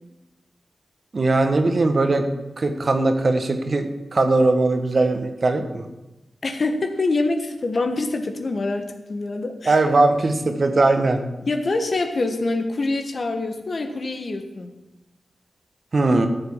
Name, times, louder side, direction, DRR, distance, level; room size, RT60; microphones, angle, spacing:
voice 1, 1.1-2.3 2.6-5.8 9.6-11.2 15.9-16.3, right 2 dB, 50° right, 7 dB, 1.5 m, -20 dB
voice 2, 6.4-9.8 11.5-14.7, left 2 dB, 55° left, 6 dB, 1.5 m, -25 dB
13.5 x 7.4 x 7.3 m, 1.0 s
cardioid pair, 65°, 0 cm